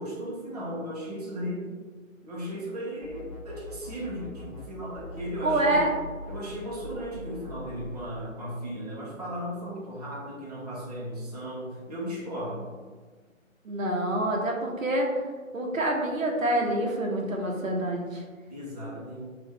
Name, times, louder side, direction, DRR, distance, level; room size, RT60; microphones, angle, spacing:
voice 1, 0.0-1.8 2.2-5.9 6.3-12.8 18.5-19.3, equal, 30° right, -6 dB, 0.7 m, -36 dB
sound 1, 3.0-4.7 4.9-8.1, left 2 dB, 25° left, 0.5 m, -42 dB
voice 2, 5.4-5.9 13.6-15.2 15.5-18.2, right 1 dB, 75° right, 0 dB, 0.9 m, -26 dB
3.9 x 2.5 x 3.5 m, 1.4 s
figure-of-eight pair, 155°, 40 cm